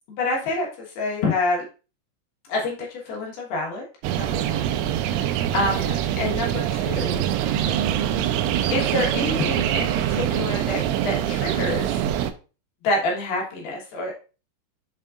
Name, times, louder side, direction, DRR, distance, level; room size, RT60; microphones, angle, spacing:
voice 1, 0.1-0.7 1.0-1.6 2.5-2.8 3.1-3.8 4.2-4.8 5.0-7.2 8.7-11.9 12.8-14.2, left 2 dB, 65° left, -2 dB, 3.0 m, -27 dB
sound 1, 4.0-12.3, right 10 dB, 85° right, 3.0 m, -24 dB
7.4 x 5.4 x 2.4 m, 0.34 s
omnidirectional pair, 5.5 m